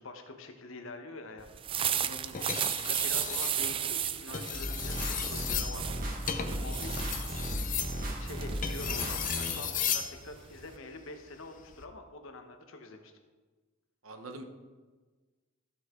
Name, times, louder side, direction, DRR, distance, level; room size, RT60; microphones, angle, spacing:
voice 1, 0.0-1.5 2.8-7.1 7.6-7.8 8.2-13.1, left 3 dB, 70° left, 5 dB, 1.1 m, -45 dB
sound 1, 1.5-10.8, right 9 dB, 25° right, 0.3 m, -35 dB
voice 2, 1.9-2.6 14.0-14.4, right 1 dB, 80° right, 6 dB, 1.1 m, -46 dB
sound 2, 2.3-3.6 4.2-10.1 11.6-11.8, left 8 dB, 40° left, 0.7 m, -35 dB
sound 3, 4.5-9.5, equal, 45° right, 1.6 m, -36 dB
14.5 x 5.7 x 3.8 m, 1.4 s
head